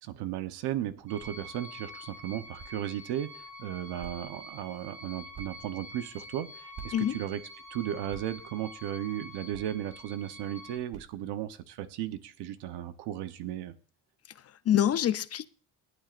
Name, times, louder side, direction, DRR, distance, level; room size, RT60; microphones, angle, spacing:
voice 1, 0.0-7.4 7.7-13.7, right 12 dB, 90° right, 1.0 m, -35 dB
sound 1, 0.7-11.6, right 7 dB, 50° right, 2.1 m, -54 dB
sound 2, 1.1-10.8, left 1 dB, 15° right, 7.2 m, -47 dB
voice 2, 14.4-15.5, left 10 dB, 40° left, 0.6 m, -26 dB
20.5 x 8.1 x 2.5 m
cardioid pair, 115°, 39 cm